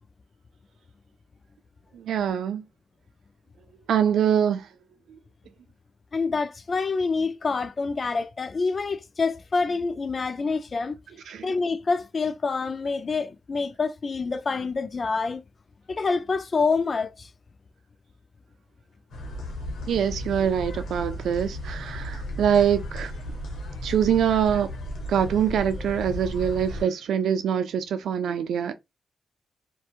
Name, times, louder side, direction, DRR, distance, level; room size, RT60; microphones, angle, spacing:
voice 1, 1.9-2.6 3.9-4.7 11.3-11.5 19.9-23.1 23.8-24.7 25.1-28.7, right 8 dB, 90° right, 0.4 m, -24 dB
voice 2, 6.1-11.0 11.4-15.4 15.9-17.3, left 4 dB, 45° left, 0.4 m, -27 dB
sound 1, 19.1-26.8, left 1 dB, 85° left, 0.9 m, -35 dB
2.7 x 2.2 x 2.4 m
cardioid pair, 75°, 0 cm